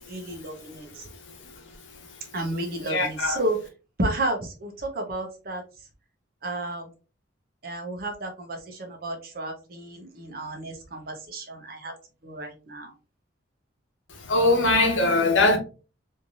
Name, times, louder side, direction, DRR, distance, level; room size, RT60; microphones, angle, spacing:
voice 1, 0.0-1.1 2.3-3.6 4.0-5.6 6.4-6.9 7.6-11.9 12.2-12.9, right 1 dB, 50° right, 0.8 m, -32 dB
voice 2, 2.9-3.4 14.3-15.6, left 2 dB, 85° left, 0.9 m, -21 dB
3.2 x 2.7 x 2.5 m
head